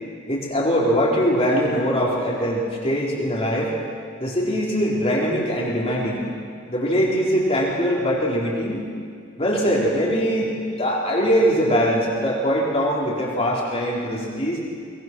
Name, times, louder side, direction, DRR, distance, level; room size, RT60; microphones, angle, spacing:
voice 1, 0.3-3.7 4.2-6.2 6.7-8.8 9.4-14.6, equal, 30° left, -4 dB, 4.2 m, -22 dB
23.0 x 21.5 x 6.3 m, 2.2 s
head